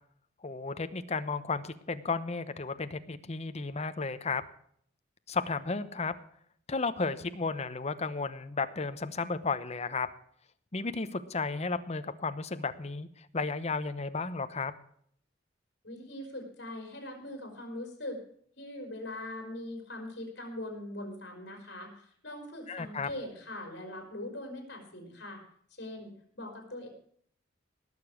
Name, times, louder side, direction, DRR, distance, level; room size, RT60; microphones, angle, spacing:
voice 1, 0.4-4.4 5.3-6.1 6.7-10.1 10.7-14.7 22.7-23.1, left 4 dB, 35° left, 11 dB, 0.9 m, -33 dB
voice 2, 15.8-18.2 18.6-25.4 25.7-26.9, left 1 dB, 60° left, 3 dB, 4.7 m, -41 dB
19.0 x 7.0 x 6.3 m, 0.63 s
head